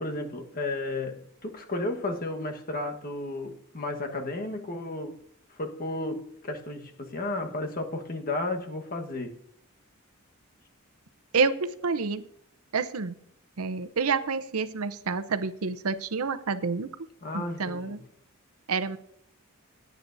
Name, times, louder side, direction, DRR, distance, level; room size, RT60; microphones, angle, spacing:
voice 1, 0.0-5.2 5.5-9.4 17.2-18.0, left 2 dB, 40° left, 1.3 m, -33 dB
voice 2, 11.3-12.2 12.7-13.2 13.6-16.9 17.3-18.0 18.7-19.0, right 4 dB, 80° right, 0.7 m, -28 dB
17.5 x 9.2 x 2.6 m
head